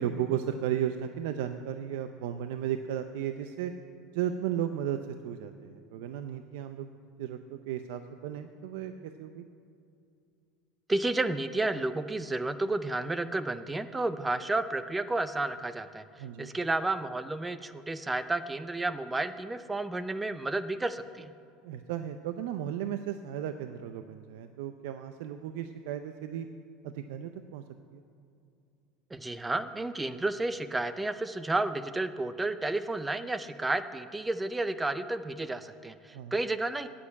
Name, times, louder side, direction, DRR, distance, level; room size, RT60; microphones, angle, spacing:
voice 1, 0.0-3.7 4.1-9.4 16.2-16.6 21.6-26.5 26.8-27.6 27.9-28.0 36.1-36.3, right 10 dB, 80° right, 9 dB, 0.5 m, -35 dB
voice 2, 10.9-21.3 29.1-36.9, right 2 dB, 10° right, 12 dB, 0.5 m, -31 dB
9.9 x 8.6 x 8.4 m, 2.5 s
cardioid pair, 155°, 0 cm